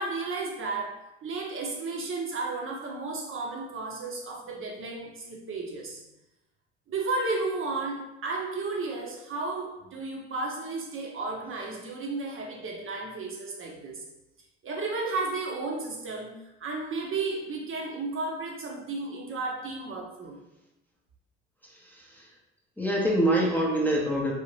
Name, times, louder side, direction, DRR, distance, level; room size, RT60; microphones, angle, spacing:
voice 1, 0.0-6.0 6.9-14.0 14.6-20.4, right 3 dB, 40° right, 0.7 m, -33 dB
voice 2, 21.7-22.3 22.8-24.3, right 1 dB, 5° left, 0.6 m, -25 dB
2.7 x 2.4 x 3.1 m
hypercardioid pair, 60°, 34 cm